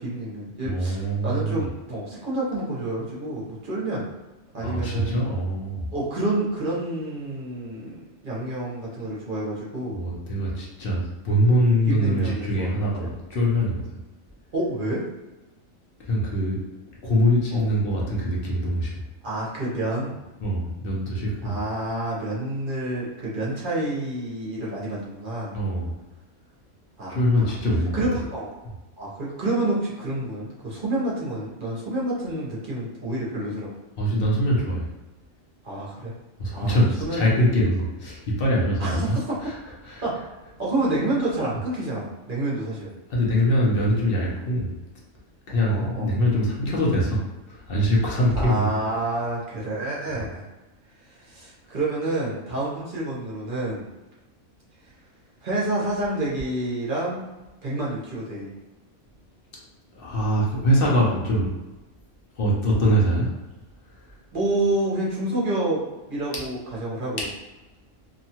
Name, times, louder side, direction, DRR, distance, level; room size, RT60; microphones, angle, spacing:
voice 1, 0.0-4.1 4.5-5.2 5.9-10.0 11.9-13.1 14.5-15.0 17.5-17.7 19.2-20.2 21.4-25.6 27.0-27.5 27.9-28.5 29.0-33.7 35.6-36.1 36.5-37.3 38.8-39.4 40.0-40.1 40.6-42.9 45.7-46.1 48.4-50.5 51.1-53.9 55.4-57.2 57.6-58.5 64.3-65.8 66.1-67.2, right 1 dB, 45° right, -6 dB, 0.8 m, -28 dB
voice 2, 0.6-1.6 4.6-5.8 9.9-13.8 16.0-16.6 17.0-18.9 20.4-21.6 25.5-25.9 27.1-27.9 34.0-34.9 36.4-39.5 39.8-40.0 43.1-44.7 45.5-48.9 50.1-50.2 59.9-61.5 62.4-63.3, equal, 50° left, -4 dB, 0.7 m, -23 dB
2.7 x 2.3 x 2.8 m, 1.1 s
omnidirectional pair, 1.5 m